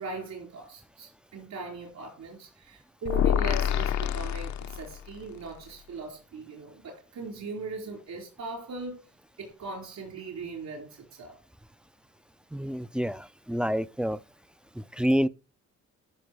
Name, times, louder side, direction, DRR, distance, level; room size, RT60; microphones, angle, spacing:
voice 1, 0.0-9.0 9.4-11.4, right 3 dB, 65° right, 4.6 m, -39 dB
sound 1, 3.1-5.2, left 9 dB, 65° left, 0.7 m, -27 dB
voice 2, 12.5-14.2 14.8-15.3, equal, 5° right, 0.4 m, -28 dB
14.0 x 5.9 x 4.7 m
cardioid pair, 90°, 30 cm